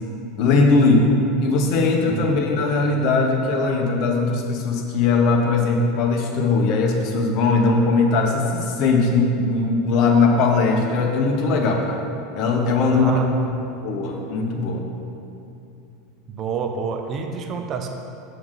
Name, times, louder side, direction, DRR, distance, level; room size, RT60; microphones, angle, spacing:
voice 1, 0.4-12.1 12.4-13.1 13.8-14.8, left 3 dB, 50° left, 2 dB, 1.0 m, -19 dB
voice 2, 12.8-13.4 16.3-17.9, right 5 dB, 35° right, 4 dB, 0.6 m, -28 dB
7.6 x 6.9 x 3.8 m, 2.6 s
supercardioid pair, 140°, 0 cm